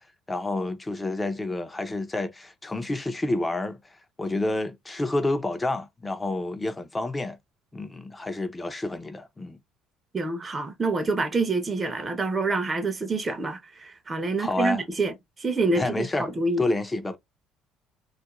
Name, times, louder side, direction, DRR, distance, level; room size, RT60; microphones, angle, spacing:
voice 1, 0.3-3.8 4.2-7.4 7.7-9.6 14.4-14.8 15.8-16.3 16.6-17.2, left 2 dB, 20° left, 0.5 m, -29 dB
voice 2, 10.1-16.6, right 3 dB, 25° right, 0.6 m, -27 dB
2.4 x 2.1 x 2.9 m
supercardioid pair, 75°, 0 cm